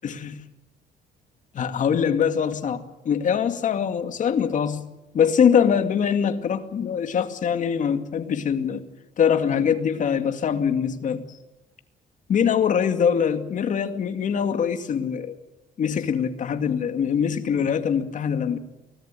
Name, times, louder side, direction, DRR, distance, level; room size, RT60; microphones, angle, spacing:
voice 1, 0.0-0.4 1.5-4.8 5.1-8.8 9.2-11.2 12.3-15.4 15.8-18.6, left 7 dB, 50° left, 8 dB, 2.3 m, -23 dB
24.0 x 18.5 x 9.2 m, 0.98 s
cardioid pair, 110°, 17 cm